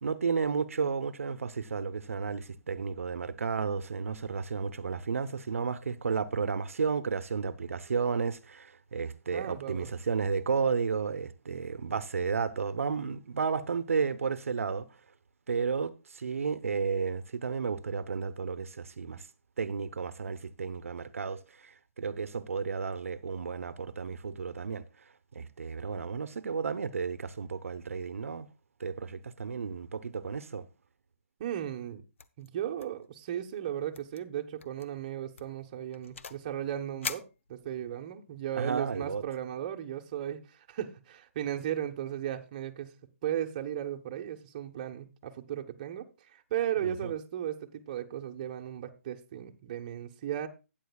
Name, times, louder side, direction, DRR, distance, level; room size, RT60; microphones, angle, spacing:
voice 1, 0.0-14.9 15.5-19.3 19.6-24.8 25.3-28.5 28.8-30.6 38.6-39.2 46.8-47.1, right 5 dB, 70° right, 0.9 m, -32 dB
voice 2, 9.3-9.9 31.4-32.0 32.4-37.2 37.5-42.9 43.2-50.5, right 10 dB, 30° right, 1.1 m, -36 dB
office door keypad, 32.2-32.5 32.8-33.1 33.3-33.4 33.9-34.2 34.6-34.9 35.4-36.5 37.0-38.0, left 5 dB, 60° left, 0.9 m, -41 dB
13.5 x 9.1 x 2.3 m
hypercardioid pair, 160°, 8 cm